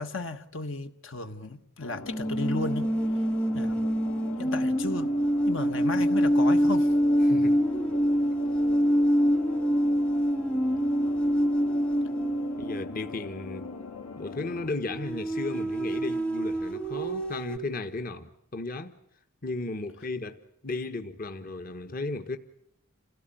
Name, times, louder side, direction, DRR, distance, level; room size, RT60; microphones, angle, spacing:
voice 1, 0.0-2.9 3.5-3.9 4.4-5.1 5.4-6.9, left 3 dB, 60° left, 1.5 m, -34 dB
sound 1, 1.8-14.7, left 4 dB, 80° left, 4.8 m, -41 dB
sound 2, 2.1-13.1 14.9-17.6, equal, 5° left, 0.9 m, -25 dB
voice 2, 7.2-7.7 12.6-13.7 14.2-18.9 19.4-22.4, left 2 dB, 40° left, 1.3 m, -35 dB
28.5 x 17.5 x 9.1 m
head